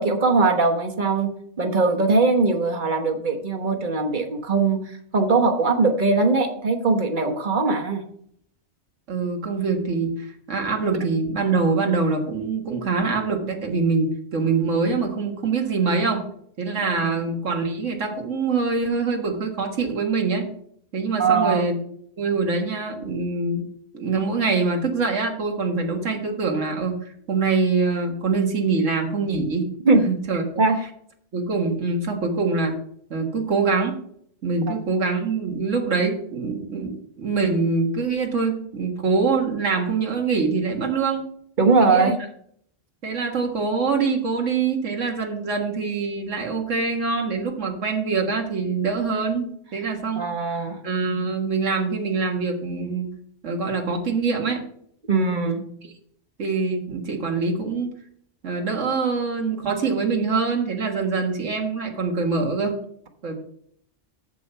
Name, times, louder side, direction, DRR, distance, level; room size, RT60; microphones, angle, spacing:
voice 1, 0.0-1.3 1.6-8.0 17.0-17.1 21.2-21.7 29.8-30.0 30.6-30.8 34.6-34.7 41.6-42.2 50.2-50.8 55.1-55.6, right 3 dB, 40° right, 4 dB, 1.3 m, -21 dB
voice 2, 9.1-16.3 16.6-20.5 20.9-21.8 22.2-23.7 23.9-29.7 30.0-30.4 31.3-32.8 33.1-34.0 34.4-41.3 41.8-42.1 43.0-50.2 50.8-53.1 53.4-54.6 56.4-57.9 58.4-62.8 63.2-63.3, right 4 dB, 85° right, 3 dB, 1.9 m, -24 dB
7.6 x 7.4 x 5.5 m, 0.66 s
omnidirectional pair, 1.2 m